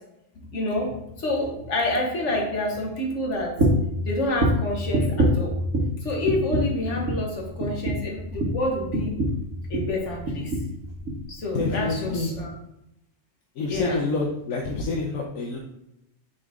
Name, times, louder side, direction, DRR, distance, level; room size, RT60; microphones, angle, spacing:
voice 1, 0.5-0.9 1.2-3.5 4.0-5.5 6.0-9.2 9.7-10.5 11.3-12.5 13.7-14.0, left 1 dB, 65° left, 0 dB, 1.7 m, -28 dB
sound 1, 3.6-4.0 4.4-6.0 6.3-6.8 7.1-7.3 7.6-10.0 10.3-10.7 11.0-11.3 11.6-11.7, right 1 dB, 75° right, 1.4 m, -24 dB
voice 2, 11.5-12.4 13.5-15.6, left 3 dB, 80° left, 0 dB, 1.2 m, -27 dB
6.4 x 4.3 x 3.6 m, 0.84 s
omnidirectional pair, 1.3 m